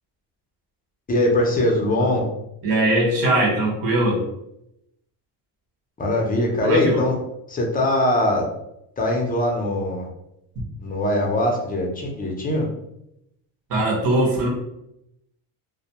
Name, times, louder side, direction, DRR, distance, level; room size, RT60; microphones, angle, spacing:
voice 1, 1.1-2.3 6.0-7.2 7.5-8.5 9.0-10.1 10.8-12.7, left 1 dB, 20° left, 0 dB, 0.5 m, -21 dB
voice 2, 2.6-4.2 6.6-7.0 13.7-14.5, right 1 dB, 50° right, -2 dB, 1.0 m, -21 dB
2.3 x 2.1 x 2.8 m, 0.81 s
cardioid pair, 115°, 46 cm